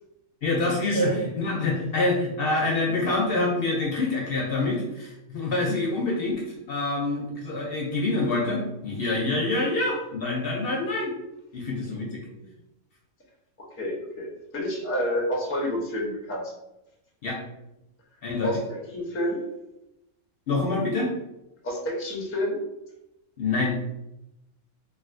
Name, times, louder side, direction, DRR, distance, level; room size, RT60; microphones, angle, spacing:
voice 1, 0.4-6.4 6.7-11.1 11.5-12.2 17.2-17.4 18.2-18.5 20.5-21.1 23.4-23.8, left 2 dB, 60° left, -2 dB, 0.7 m, -26 dB
voice 2, 11.9-12.5 13.8-14.3 14.5-16.5 18.4-19.4 21.6-22.6, equal, 15° left, -3 dB, 0.4 m, -29 dB
3.2 x 2.5 x 2.5 m, 0.90 s
omnidirectional pair, 1.3 m